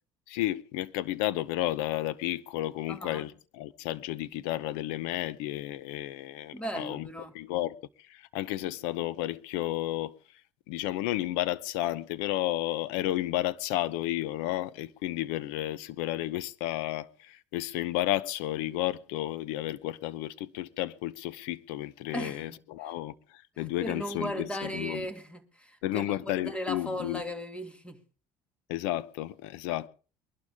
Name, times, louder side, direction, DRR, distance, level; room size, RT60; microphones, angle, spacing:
voice 1, 0.3-7.1 7.3-7.7 8.1-10.1 10.7-25.0 25.8-27.2 28.7-29.9, left 15 dB, 80° left, 0.8 m, -32 dB
voice 2, 2.9-3.2 6.5-7.3 22.1-22.9 23.8-28.0, equal, 10° left, 2.3 m, -37 dB
22.5 x 12.0 x 3.6 m
supercardioid pair, 80°, 13 cm